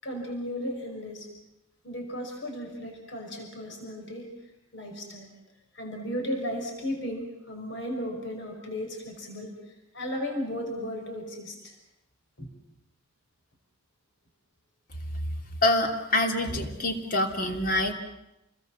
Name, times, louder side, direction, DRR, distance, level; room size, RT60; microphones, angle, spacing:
voice 1, 0.0-1.3 1.8-4.3 4.7-5.3 5.7-11.7 12.4-12.5, equal, 55° left, 2 dB, 5.8 m, -35 dB
voice 2, 15.6-17.9, left 1 dB, 40° left, 5 dB, 3.0 m, -26 dB
29.5 x 21.0 x 7.4 m, 0.88 s
head